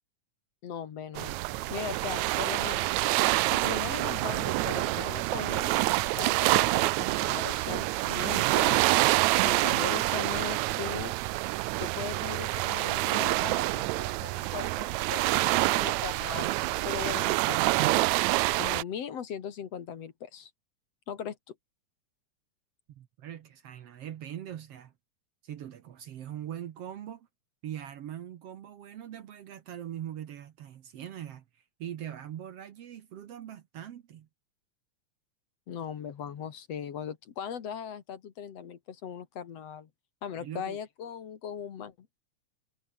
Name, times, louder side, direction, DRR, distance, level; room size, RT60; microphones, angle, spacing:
voice 1, 0.6-1.4 1.7-2.9 3.4-8.9 9.4-11.1 11.8-18.1 18.6-20.5 21.1-21.6 35.7-39.9 40.2-42.1, left 8 dB, 55° left, 2.6 m, -39 dB
sound 1, 1.1-18.8, right 20 dB, 80° right, 1.8 m, -27 dB
voice 2, 22.9-24.9 25.4-27.3 27.6-34.3 40.4-40.8, right 10 dB, 60° right, 1.9 m, -42 dB
omnidirectional pair, 3.5 m